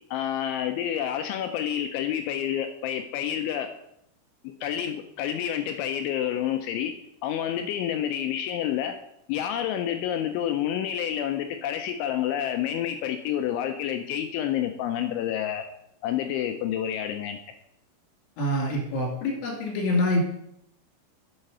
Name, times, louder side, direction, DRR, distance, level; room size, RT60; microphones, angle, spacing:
voice 1, 0.1-3.7 4.4-6.9 7.2-9.0 9.3-15.6 16.0-17.4, left 10 dB, 85° left, 6 dB, 2.7 m, -29 dB
voice 2, 18.4-20.2, left 1 dB, 70° left, -1 dB, 4.9 m, -25 dB
8.9 x 7.6 x 5.4 m, 0.79 s
omnidirectional pair, 6.0 m